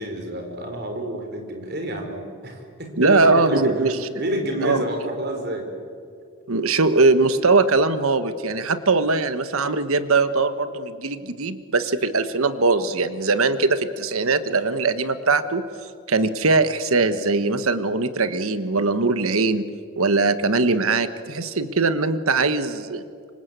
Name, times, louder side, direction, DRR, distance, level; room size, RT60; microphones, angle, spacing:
voice 1, 0.0-5.7, right 1 dB, 45° right, 4 dB, 4.6 m, -29 dB
voice 2, 3.0-4.0 4.6-4.8 6.5-15.6 16.1-19.7 20.0-23.0, right 3 dB, 80° right, 11 dB, 1.3 m, -21 dB
27.0 x 25.0 x 8.2 m, 2.2 s
head